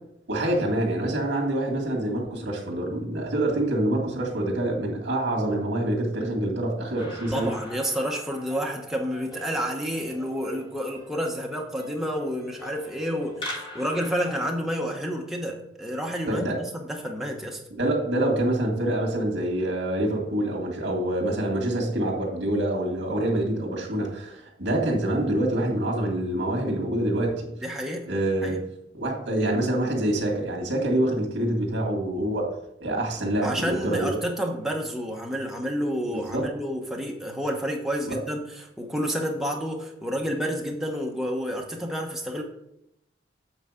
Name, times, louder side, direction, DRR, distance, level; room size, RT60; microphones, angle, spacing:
voice 1, 0.3-7.6 16.3-16.6 17.8-27.5 28.1-28.6 28.9-32.5 32.8-34.2 36.1-36.5 38.1-38.2, right 1 dB, 70° right, 0 dB, 2.0 m, -26 dB
sound 1, 7.0-14.4, left 1 dB, 25° left, 1.4 m, -42 dB
voice 2, 7.3-17.6 27.6-28.1 28.4-28.6 33.4-38.4 38.8-42.4, equal, ahead, -1 dB, 0.9 m, -29 dB
8.1 x 4.1 x 4.9 m, 0.82 s
head